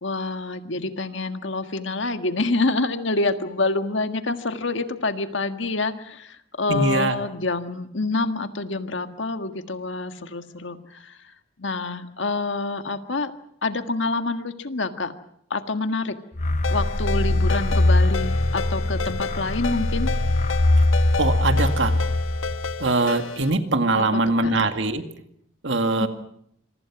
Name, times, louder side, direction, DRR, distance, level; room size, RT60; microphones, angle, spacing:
voice 1, 0.0-11.2 11.6-13.3 13.6-15.1 15.5-16.2 16.7-20.1 23.9-24.5 26.0-26.1, left 3 dB, 70° left, 8 dB, 1.6 m, -27 dB
voice 2, 6.7-7.2 21.2-22.0 22.8-25.1 25.6-26.1, right 2 dB, 65° right, 7 dB, 2.1 m, -22 dB
sound 1, 16.4-22.9, left 2 dB, 35° left, 0.9 m, -22 dB
Ringtone, 16.6-23.5, left 5 dB, 90° left, 1.3 m, -32 dB
26.5 x 23.5 x 6.1 m, 0.70 s
head